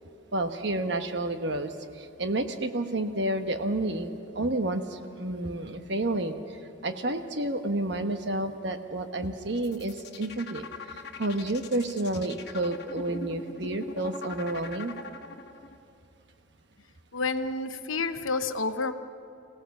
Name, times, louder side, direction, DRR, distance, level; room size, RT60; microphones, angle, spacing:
voice 1, 0.3-6.4 6.8-10.6 10.9-14.9, right 1 dB, 60° right, 7 dB, 1.2 m, -30 dB
sound 1, 9.5-15.8, left 3 dB, 55° left, 1.1 m, -41 dB
voice 2, 17.1-18.9, left 3 dB, 90° left, 9 dB, 1.0 m, -29 dB
25.5 x 17.0 x 7.1 m, 2.5 s
head